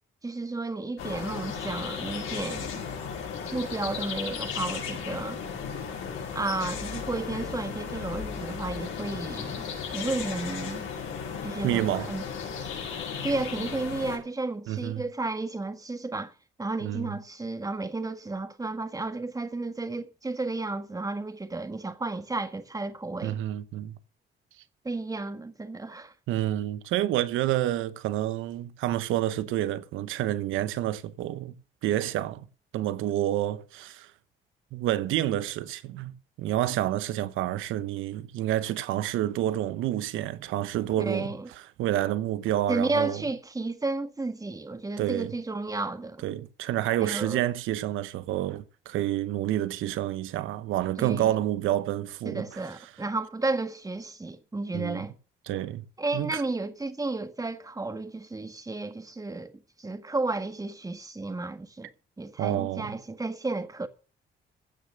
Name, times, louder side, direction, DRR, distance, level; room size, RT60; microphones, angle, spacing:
voice 1, 0.2-2.8 3.5-5.4 6.3-9.6 9.9-10.9 11.4-12.2 13.2-16.3 16.6-23.4 24.9-26.1 41.0-41.5 42.7-46.2 47.0-47.4 51.0-51.4 52.3-55.1 56.0-59.5 59.8-61.9 62.2-63.9, right 3 dB, 15° right, 1.7 m, -32 dB
sound 1, 1.0-14.2, left 6 dB, 85° left, 5.3 m, -35 dB
voice 2, 11.6-12.1 14.7-15.0 16.8-17.1 23.2-23.9 26.3-31.5 31.8-32.4 32.7-34.1 34.7-41.3 41.8-43.2 45.0-45.3 46.2-52.6 54.7-55.0 55.5-55.8 56.1-56.4 62.4-62.9, right 13 dB, 90° right, 0.9 m, -29 dB
15.5 x 6.7 x 6.4 m
cardioid pair, 90°, 20 cm